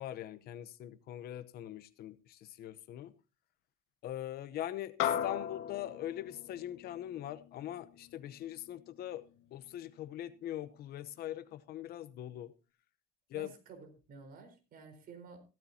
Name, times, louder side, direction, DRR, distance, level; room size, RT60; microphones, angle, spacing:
voice 1, 0.0-3.1 4.0-12.5 13.3-13.5, left 12 dB, 55° left, 0.9 m, -42 dB
sound 1, 5.0-9.6, left 10 dB, 75° left, 2.1 m, -39 dB
voice 2, 13.3-15.4, right 5 dB, 50° right, 4.4 m, -52 dB
15.5 x 13.5 x 2.8 m
cardioid pair, 140°, 20 cm